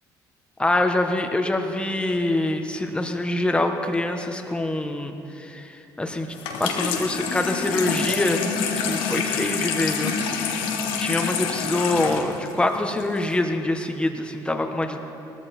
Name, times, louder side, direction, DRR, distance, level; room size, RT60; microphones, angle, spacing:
voice 1, 0.6-6.3 6.6-10.6 11.0-15.0, left 2 dB, 10° left, 5 dB, 1.3 m, -25 dB
Water tap faucet / Sink (filling or washing), 6.3-13.4, left 6 dB, 85° left, 1.4 m, -27 dB
18.5 x 13.5 x 4.4 m, 2.8 s
supercardioid pair, 90°, 9 cm